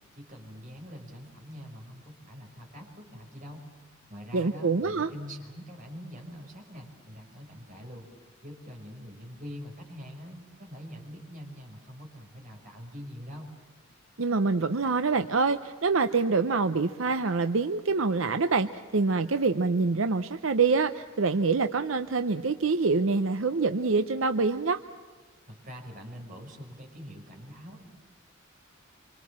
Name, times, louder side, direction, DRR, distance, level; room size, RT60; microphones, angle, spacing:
voice 1, 0.1-3.6 4.1-8.1 8.4-13.5 25.5-27.9, equal, 40° right, 1 dB, 5.3 m, -44 dB
voice 2, 4.3-5.1 14.2-18.7 18.9-24.8, right 4 dB, 75° right, 9 dB, 0.7 m, -25 dB
27.0 x 25.5 x 7.4 m, 1.4 s
head